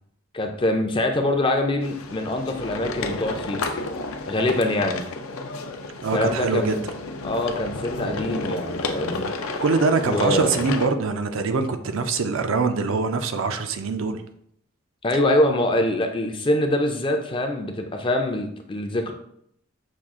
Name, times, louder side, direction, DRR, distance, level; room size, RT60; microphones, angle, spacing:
voice 1, 0.3-3.7 4.3-5.0 6.1-6.8 7.2-9.6 10.0-10.6 15.0-19.1, left 1 dB, 25° left, 4 dB, 0.4 m, -24 dB
sound 1, 1.8-10.9, left 3 dB, 80° left, 0.5 m, -31 dB
voice 2, 6.0-6.9 9.6-14.2, right 4 dB, 70° right, 8 dB, 0.4 m, -23 dB
6.0 x 2.4 x 3.5 m, 0.71 s
head